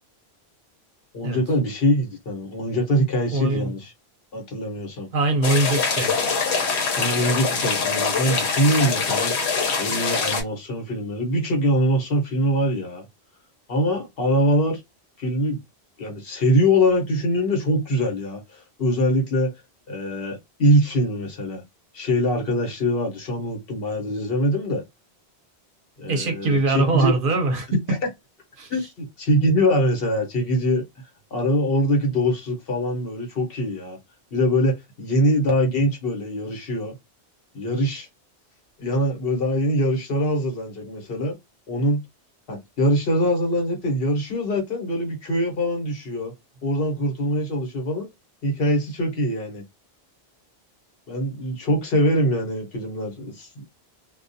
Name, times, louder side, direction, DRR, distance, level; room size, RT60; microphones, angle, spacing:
voice 1, 1.1-3.9 4.3-5.1 7.0-9.3 9.8-13.0 13.7-14.8 15.2-15.6 16.0-19.5 19.9-21.6 21.9-24.8 26.0-27.1 28.7-30.8 31.3-34.0 34.3-36.9 37.5-38.1 38.8-41.3 41.7-42.0 42.5-46.3 46.6-48.1 48.4-49.6 51.1-53.6, equal, 60° left, 1.1 m, -23 dB
voice 2, 3.3-3.7 5.1-6.3 26.1-28.0 28.6-28.9, right 2 dB, 60° right, 0.7 m, -23 dB
sound 1, 5.4-10.4, left 5 dB, 85° left, 1.0 m, -24 dB
2.3 x 2.2 x 2.6 m
omnidirectional pair, 1.1 m